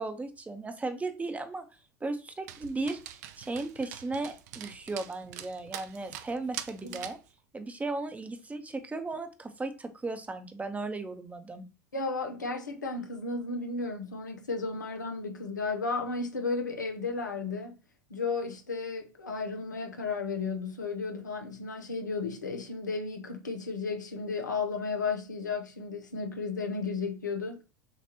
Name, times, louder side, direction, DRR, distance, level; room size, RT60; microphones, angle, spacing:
voice 1, 0.0-1.6 2.0-7.2 7.5-11.6, right 3 dB, 15° right, 0.8 m, -36 dB
Dog, 2.5-7.3, right 11 dB, 65° right, 0.5 m, -44 dB
voice 2, 11.9-17.8 18.1-27.6, left 4 dB, 85° left, 0.8 m, -34 dB
6.8 x 2.5 x 2.9 m
hypercardioid pair, 80°, 10 cm